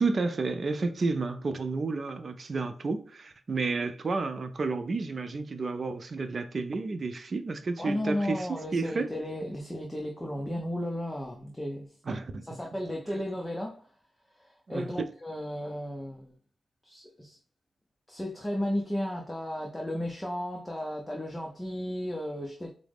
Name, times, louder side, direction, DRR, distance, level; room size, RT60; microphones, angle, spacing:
voice 1, 0.0-8.5 8.7-9.1 12.1-12.4 14.7-14.9, right 3 dB, 50° right, 0.4 m, -31 dB
voice 2, 7.8-11.9 12.4-13.9 14.3-16.3 16.8-17.4 18.1-22.7, left 1 dB, 15° left, 0.6 m, -34 dB
4.6 x 2.0 x 3.4 m
cardioid pair, 65°, 0 cm